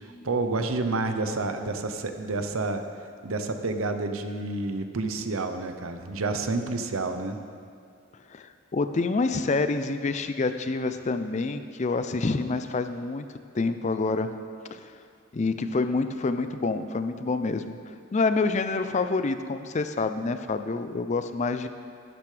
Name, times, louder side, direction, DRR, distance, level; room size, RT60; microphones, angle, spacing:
voice 1, 0.2-2.8 3.2-7.4, right 3 dB, 75° right, 7 dB, 0.8 m, -29 dB
voice 2, 8.3-13.2 13.5-14.3 14.7-14.9 15.3-21.7, left 3 dB, 35° left, 9 dB, 0.4 m, -27 dB
12.0 x 12.0 x 3.3 m, 2.3 s
head